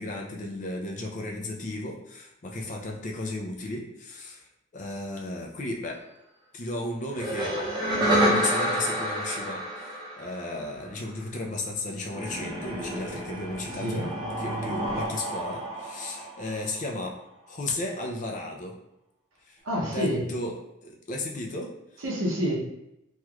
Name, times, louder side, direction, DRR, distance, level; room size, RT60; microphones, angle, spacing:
voice 1, 0.0-4.4 4.7-6.0 6.5-7.6 8.0-17.2 17.5-18.7 19.5-20.5 20.8-22.0, left 2 dB, 35° left, 0 dB, 0.4 m, -34 dB
sound 1, 7.1-10.8 12.1-16.8, equal, 20° right, 0.7 m, -29 dB
voice 2, 13.8-14.1 19.6-20.3 22.0-22.6, equal, 70° right, -3 dB, 0.8 m, -28 dB
3.1 x 3.0 x 2.3 m, 0.85 s
head